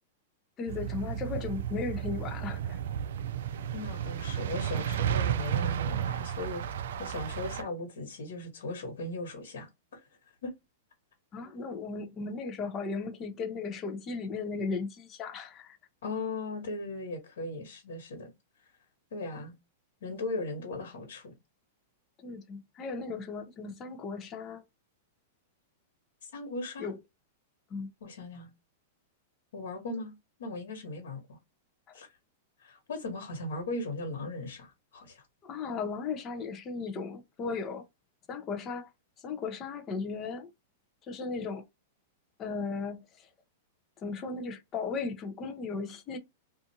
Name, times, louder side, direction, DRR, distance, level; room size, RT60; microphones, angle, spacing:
voice 1, 0.6-2.8 11.3-15.8 22.2-24.6 26.8-27.0 27.7-27.9 35.4-37.8 38.3-38.9 39.2-40.5 41.1-41.6 42.4-43.3 44.0-46.2, left 4 dB, 25° left, 0.5 m, -36 dB
sound 1, 0.7-7.6, right 9 dB, 70° right, 0.3 m, -33 dB
voice 2, 3.7-6.6 7.0-10.0 10.4-10.5 16.0-18.3 19.1-19.5 20.0-21.3 26.3-26.9 28.0-28.5 29.5-30.1 30.4-31.4 31.9-32.1 32.6-35.2, left 2 dB, 80° left, 1.3 m, -38 dB
2.5 x 2.4 x 2.8 m
supercardioid pair, 160°, 0 cm